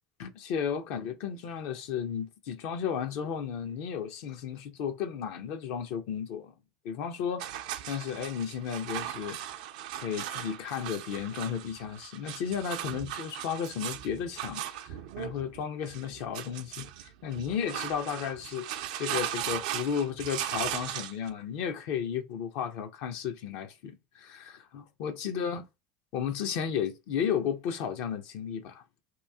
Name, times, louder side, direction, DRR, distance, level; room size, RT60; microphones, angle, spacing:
voice 1, 0.2-6.5 6.8-7.4 7.9-9.4 10.0-16.9 17.2-25.7 26.1-28.8, left 8 dB, 65° left, 0.7 m, -34 dB
sound 1, 7.4-21.3, right 11 dB, 75° right, 0.5 m, -38 dB
3.0 x 2.7 x 3.4 m
hypercardioid pair, 80°, 4 cm